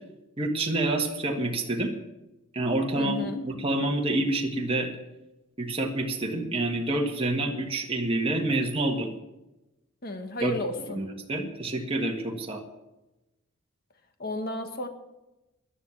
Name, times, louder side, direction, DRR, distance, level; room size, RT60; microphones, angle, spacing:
voice 1, 0.4-1.9 2.5-4.9 5.6-9.1 10.4-10.6 10.9-12.6, right 2 dB, 25° right, 0 dB, 1.6 m, -28 dB
voice 2, 2.9-3.4 10.0-11.0 14.2-14.9, equal, 40° left, 7 dB, 1.4 m, -32 dB
11.0 x 10.5 x 7.2 m, 1.0 s
head